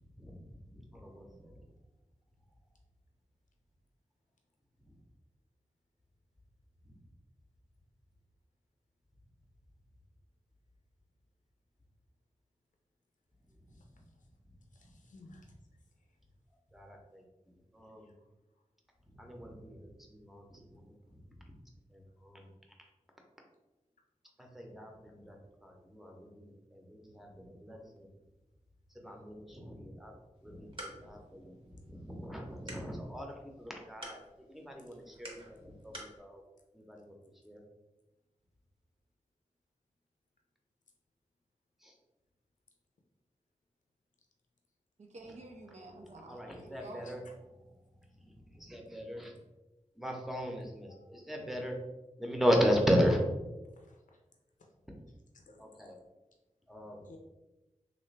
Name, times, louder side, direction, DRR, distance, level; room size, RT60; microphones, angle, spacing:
voice 1, 0.6-1.6 4.9-5.0 6.8-6.9 13.7-14.0 16.7-18.1 19.1-21.2 21.9-22.5 24.4-25.4 25.6-28.1 28.9-30.2 30.4-36.4 36.7-37.1 37.4-37.6 41.8-41.9 46.0-47.2 48.2-49.3 50.0-51.8 52.2-53.2 55.6-56.0 56.7-57.0, equal, ahead, 1 dB, 0.7 m, -36 dB
voice 2, 14.7-15.5 18.0-18.1 46.7-47.4 50.9-51.8 55.5-55.7 57.0-57.2, left 3 dB, 85° left, 1 dB, 0.5 m, -58 dB
sound 1, 30.3-36.2, right 1 dB, 45° right, 0.9 m, -51 dB
voice 3, 45.0-47.1, right 2 dB, 65° right, 2 dB, 0.5 m, -50 dB
3.2 x 2.5 x 3.1 m, 1.0 s
wide cardioid pair, 65°, 13 cm